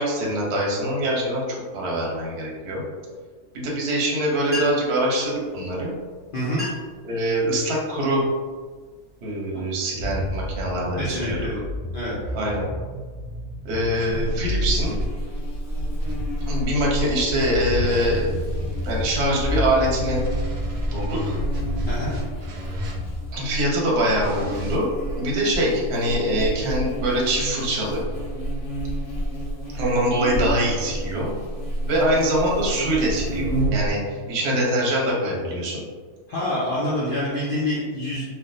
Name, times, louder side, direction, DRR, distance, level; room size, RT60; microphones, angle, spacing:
voice 1, 0.0-1.4 1.7-2.8 3.5-5.9 7.0-8.2 9.2-11.4 12.3-12.7 13.6-15.0 16.5-18.3 18.8-20.2 20.9-21.2 23.3-28.0 29.7-31.3 31.9-35.8, right 1 dB, 55° right, -2 dB, 0.8 m, -24 dB
sound 1, 4.2-4.3 4.4-5.0 5.9-6.1 6.4-7.0 7.5-7.9 8.5-8.7 9.3-10.5, left 2 dB, 10° right, 0.5 m, -35 dB
voice 2, 6.3-6.6 11.0-11.6 11.9-12.2 21.9-22.1 36.3-38.3, left 1 dB, 80° left, -8 dB, 0.4 m, -26 dB
sound 2, 10.0-15.1 16.0-23.4 24.1-24.8, left 1 dB, 80° right, 0.5 m, -31 dB
Buzz, 14.1-33.9, right 1 dB, 65° left, 1.2 m, -30 dB
3.3 x 2.1 x 2.6 m, 1.5 s
omnidirectional pair, 1.7 m